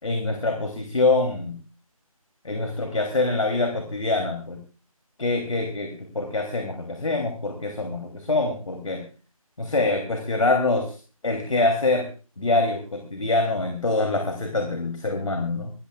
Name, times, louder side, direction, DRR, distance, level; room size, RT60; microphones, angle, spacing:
voice 1, 0.0-1.6 2.4-4.6 5.2-9.0 9.6-11.0 11.2-12.1 12.4-15.7, left 2 dB, 60° left, 4 dB, 3.3 m, -25 dB
26.5 x 14.0 x 2.4 m, 0.36 s
figure-of-eight pair, 165°, 19 cm